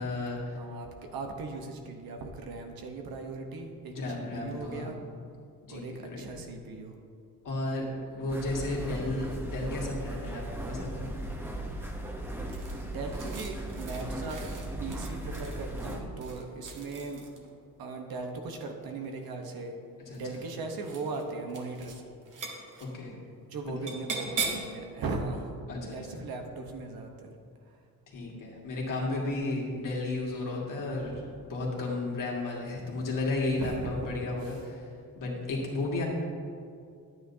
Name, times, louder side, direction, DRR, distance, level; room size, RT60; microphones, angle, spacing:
voice 1, 0.0-0.6 3.9-4.9 5.6-6.2 7.4-11.0 20.1-20.4 22.8-23.1 23.6-23.9 25.7-26.1 28.1-31.1 31.4-36.1, left 2 dB, 60° left, -3 dB, 2.1 m, -33 dB
voice 2, 0.6-5.0 5.7-7.0 12.9-14.5 14.8-17.3 17.8-19.8 20.2-22.0 23.5-25.6 25.9-27.3 27.6-27.8 30.9-31.2 33.6-34.1 34.4-34.5, right 3 dB, 80° right, 3 dB, 1.1 m, -38 dB
sound 1, 8.3-16.0, right 1 dB, 5° right, 1.0 m, -37 dB
sound 2, 12.5-17.5 18.8-19.4 20.1-20.5 20.8-21.2 21.5-22.0 22.2-22.9 23.9-24.7, right 4 dB, 60° right, 1.5 m, -39 dB
10.0 x 9.1 x 2.8 m, 2.4 s
cardioid pair, 100°, 35 cm